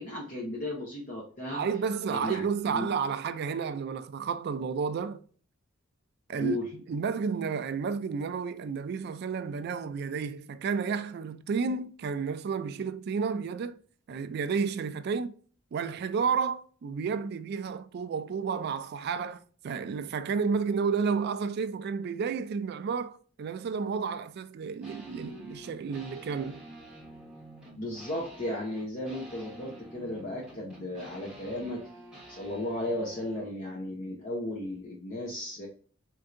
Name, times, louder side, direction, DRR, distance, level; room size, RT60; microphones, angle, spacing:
voice 1, 0.0-1.6 2.1-2.9 6.4-6.7 27.8-31.8 32.3-35.7, left 1 dB, 40° left, 0.8 m, -35 dB
voice 2, 1.5-5.2 6.3-6.6 6.9-13.8 14.1-15.3 15.7-26.6, right 5 dB, 50° right, 0.3 m, -31 dB
sound 1, 24.8-33.5, equal, 5° right, 1.2 m, -49 dB
4.5 x 2.6 x 2.5 m
head